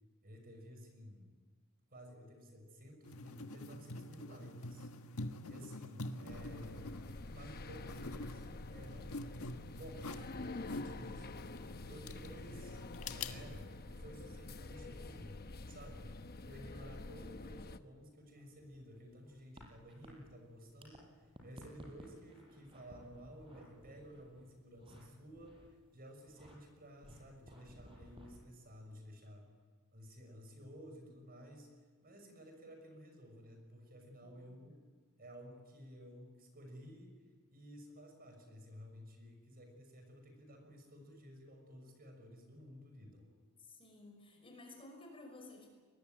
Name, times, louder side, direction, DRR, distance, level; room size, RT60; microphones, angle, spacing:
voice 1, 0.2-1.3 1.9-4.9 5.4-6.9 7.3-8.4 8.7-9.3 9.7-11.3 11.9-15.4 15.7-16.1 16.4-25.7 25.9-29.5 29.9-31.7 32.0-34.7 35.2-37.1 37.5-43.3, equal, 45° right, 4 dB, 6.2 m, -54 dB
sound 1, 3.0-13.7, left 2 dB, 85° left, 1.5 m, -47 dB
sound 2, 6.3-17.8, left 2 dB, 45° left, 0.9 m, -48 dB
sound 3, 18.3-21.0 21.2-25.0 25.3-25.8 26.2-26.6 27.0-28.4, equal, 25° right, 5.8 m, -57 dB
voice 2, 34.2-34.7 43.6-45.7, left 2 dB, 25° left, 3 dB, 5.7 m, -56 dB
24.0 x 21.0 x 9.2 m, 1.4 s
head